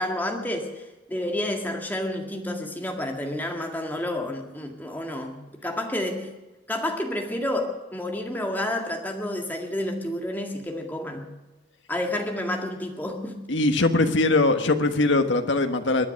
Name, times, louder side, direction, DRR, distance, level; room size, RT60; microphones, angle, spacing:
voice 1, 0.0-6.3 6.7-11.3 11.9-13.4, left 1 dB, 10° left, 2 dB, 1.9 m, -30 dB
voice 2, 13.5-16.1, left 2 dB, 75° left, 6 dB, 1.4 m, -21 dB
22.5 x 9.9 x 6.5 m, 1.1 s
head